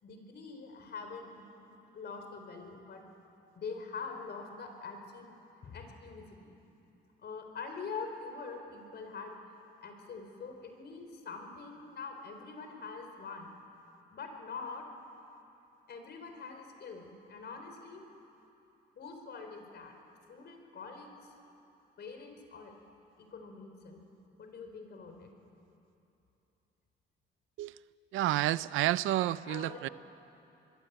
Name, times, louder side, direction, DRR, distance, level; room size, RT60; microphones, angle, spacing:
voice 1, 0.0-3.0 3.5-5.3 5.6-6.6 7.2-9.3 9.8-13.5 14.1-14.9 15.9-18.1 19.0-20.0 20.3-21.3 22.0-22.7 23.2-24.0 24.4-25.3 29.5-29.9, left 4 dB, 55° left, 4 dB, 4.1 m, -44 dB
voice 2, 28.1-29.9, right 15 dB, 85° right, 17 dB, 0.6 m, -30 dB
26.0 x 22.0 x 8.1 m, 2.9 s
cardioid pair, 90°, 20 cm